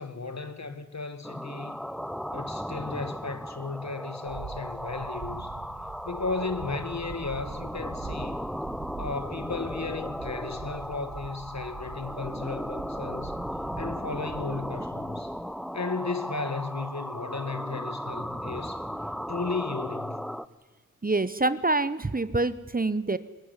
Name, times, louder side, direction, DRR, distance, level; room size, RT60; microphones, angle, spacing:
voice 1, 0.0-1.8 2.3-5.6 6.0-8.4 9.0-13.3 13.8-15.3 15.7-18.8 19.3-20.3, left 4 dB, 55° left, 2.0 m, -35 dB
sound 1, 1.2-20.4, equal, ahead, 0.8 m, -36 dB
sound 2, 4.2-15.6, right 5 dB, 65° right, 1.5 m, -44 dB
voice 2, 21.0-23.2, right 2 dB, 25° right, 1.0 m, -26 dB
20.5 x 19.5 x 9.8 m
cardioid pair, 50°, 32 cm